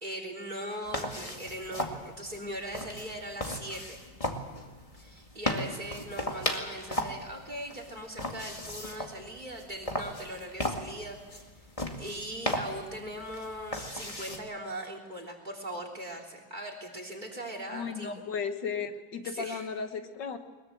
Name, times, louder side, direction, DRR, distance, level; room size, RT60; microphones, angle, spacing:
voice 1, 0.0-4.0 5.0-11.4 12.0-18.1 19.2-19.7, right 1 dB, 25° right, 4 dB, 3.5 m, -40 dB
sound 1, 0.9-14.4, left 1 dB, 20° left, 2.1 m, -37 dB
voice 2, 17.7-20.4, left 6 dB, 90° left, 7 dB, 2.1 m, -35 dB
22.0 x 21.5 x 7.9 m, 1.3 s
omnidirectional pair, 1.9 m